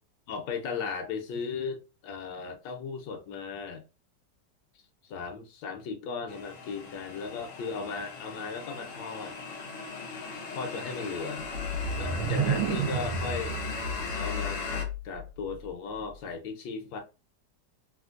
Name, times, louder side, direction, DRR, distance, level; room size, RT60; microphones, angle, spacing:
voice 1, 0.3-3.8 5.1-9.4 10.5-11.5 12.0-13.6 14.1-17.0, left 5 dB, 85° left, 1.3 m, -36 dB
sound 1, 6.3-14.8, left 4 dB, 55° left, 0.9 m, -38 dB
sound 2, 11.4-15.2, right 3 dB, 70° right, 1.2 m, -31 dB
3.3 x 2.5 x 2.4 m
omnidirectional pair, 1.9 m